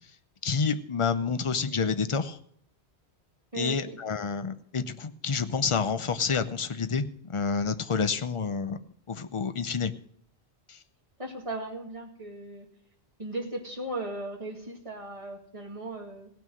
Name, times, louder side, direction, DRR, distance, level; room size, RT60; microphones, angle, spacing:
voice 1, 0.4-2.4 3.5-8.8 9.1-9.9 10.7-10.8, left 5 dB, 35° left, 11 dB, 0.6 m, -29 dB
voice 2, 3.5-4.0 11.2-12.7 13.2-16.3, right 2 dB, 30° right, 0 dB, 2.3 m, -37 dB
17.0 x 6.1 x 7.7 m, 0.67 s
omnidirectional pair, 1.1 m